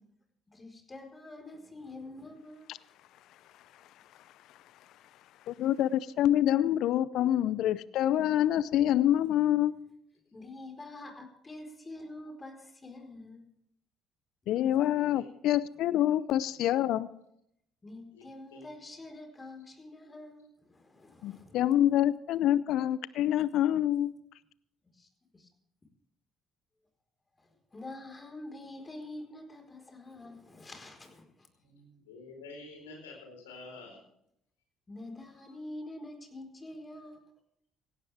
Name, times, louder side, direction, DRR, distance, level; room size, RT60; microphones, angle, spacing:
voice 1, 0.5-2.7 10.3-13.5 17.8-21.6 24.9-25.5 27.4-31.5 34.9-37.3, left 2 dB, 25° left, 4.5 m, -46 dB
voice 2, 5.5-9.7 14.5-17.1 21.2-24.1, left 12 dB, 65° left, 0.5 m, -26 dB
voice 3, 14.9-15.2 18.1-18.7 31.6-34.0, left 3 dB, 85° left, 4.4 m, -49 dB
17.5 x 16.5 x 3.5 m
hypercardioid pair, 50°, 0 cm